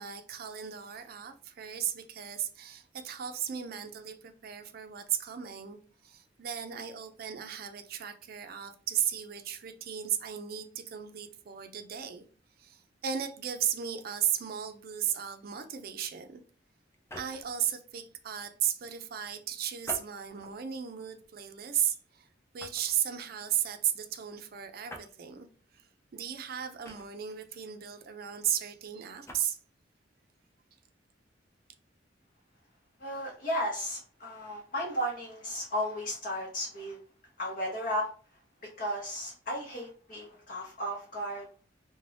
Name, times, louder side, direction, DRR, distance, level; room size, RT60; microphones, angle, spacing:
voice 1, 0.0-5.8 6.0-12.2 12.6-16.4 17.2-22.3 22.5-25.5 26.1-29.6, right 9 dB, 55° right, 0.4 m, -35 dB
sound 1, 16.9-17.6 19.8-20.6 21.2-21.4 22.6-23.0 24.9-25.1 26.8-27.4 29.1-29.5, left 1 dB, 15° left, 0.4 m, -45 dB
voice 2, 33.0-37.0 37.4-38.1 38.8-41.5, equal, 50° left, 0.8 m, -34 dB
2.5 x 2.1 x 3.2 m
head